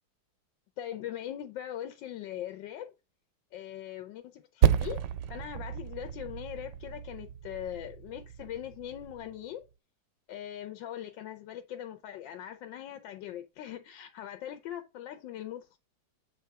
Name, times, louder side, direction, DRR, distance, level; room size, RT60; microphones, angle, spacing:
voice 1, 0.8-2.9 3.5-5.0 5.3-9.7 10.3-15.8, left 11 dB, 85° left, 1.4 m, -41 dB
Percussion, 4.6-9.5, right 9 dB, 75° right, 1.2 m, -31 dB
8.3 x 3.6 x 5.6 m
omnidirectional pair, 2.0 m